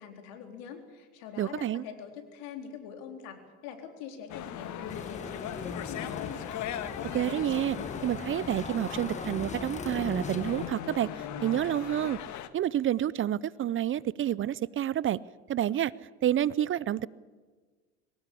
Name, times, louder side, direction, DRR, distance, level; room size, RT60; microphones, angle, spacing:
voice 1, 0.0-6.5, left 7 dB, 70° left, 5 dB, 4.0 m, -44 dB
voice 2, 1.4-1.8 7.1-7.8 8.0-12.2 12.5-15.2 15.5-15.9 16.2-17.1, right 11 dB, 35° right, 21 dB, 0.6 m, -29 dB
sound 1, 4.3-12.5, left 10 dB, 55° left, 1.8 m, -39 dB
sound 2, 4.9-10.7, left 3 dB, 20° left, 2.1 m, -40 dB
23.0 x 18.5 x 8.5 m, 1.4 s
hypercardioid pair, 75°, 35 cm